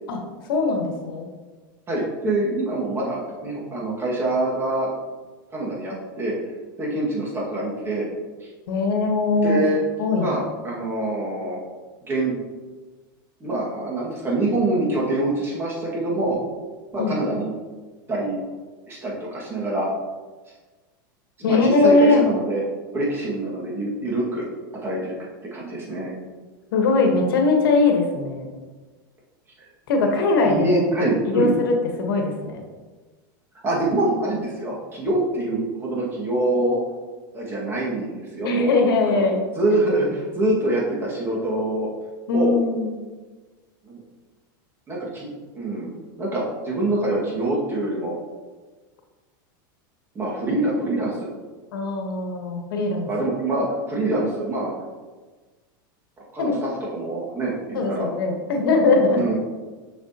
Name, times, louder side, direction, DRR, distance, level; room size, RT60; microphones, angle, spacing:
voice 1, 0.4-1.3 8.7-9.6 10.0-10.3 17.0-17.1 21.4-22.2 26.7-28.5 29.9-30.8 31.3-32.6 38.4-39.4 42.3-42.9 51.7-53.1 56.4-56.6 57.7-59.2, left 3 dB, 80° left, 2 dB, 1.3 m, -20 dB
voice 2, 1.9-4.9 5.5-6.4 6.8-8.1 8.4-8.5 9.4-9.8 10.2-11.6 12.1-12.3 13.4-16.4 16.9-17.5 18.1-18.4 18.9-19.9 21.4-22.6 22.9-24.4 24.8-25.1 25.5-26.1 29.6-29.7 30.4-31.5 33.6-36.8 37.3-38.7 39.1-39.3 39.6-41.9 42.3-42.5 43.8-44.0 44.9-45.9 46.2-48.1 50.2-51.3 53.1-54.7 56.3-58.1 59.1-59.4, right 2 dB, 20° right, -4 dB, 1.9 m, -25 dB
7.0 x 6.1 x 2.9 m, 1.3 s
supercardioid pair, 145°, 11 cm